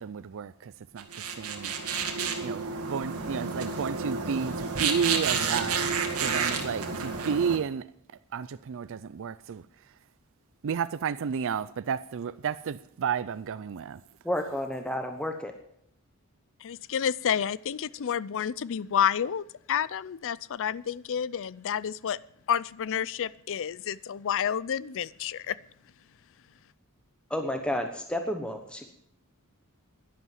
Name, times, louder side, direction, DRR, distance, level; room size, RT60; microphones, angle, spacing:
voice 1, 0.0-1.8 2.4-7.9 8.3-9.6 10.6-14.0, right 7 dB, 60° right, 0.4 m, -32 dB
sound 1, 1.0-7.6, right 5 dB, 85° right, 1.9 m, -30 dB
voice 2, 14.2-15.5 27.3-28.9, left 1 dB, 5° left, 1.1 m, -31 dB
voice 3, 16.6-22.2 22.5-25.6, left 8 dB, 65° left, 0.5 m, -30 dB
11.0 x 11.0 x 7.5 m
head